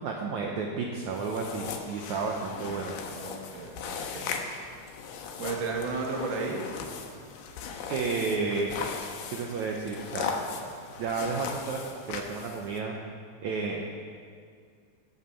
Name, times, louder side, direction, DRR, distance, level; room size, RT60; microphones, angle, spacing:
voice 1, 0.0-3.0 7.9-8.8 9.3-10.3 11.0-13.0 13.4-13.8, right 4 dB, 70° right, 1 dB, 1.9 m, -31 dB
sound 1, 1.1-12.8, left 5 dB, 75° left, 2.7 m, -38 dB
voice 2, 2.7-4.3 5.4-6.6, right 4 dB, 45° right, 0 dB, 1.6 m, -34 dB
14.5 x 8.2 x 6.9 m, 2.2 s
omnidirectional pair, 4.3 m